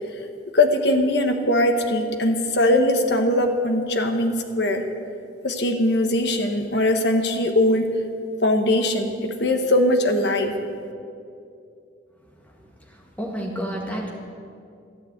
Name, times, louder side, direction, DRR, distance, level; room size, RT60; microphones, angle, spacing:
voice 1, 0.5-4.8 5.4-7.9 8.4-10.5, left 1 dB, 65° left, 5 dB, 1.2 m, -21 dB
voice 2, 13.2-14.1, equal, 10° left, -2 dB, 1.9 m, -29 dB
13.0 x 8.9 x 8.1 m, 2.5 s
head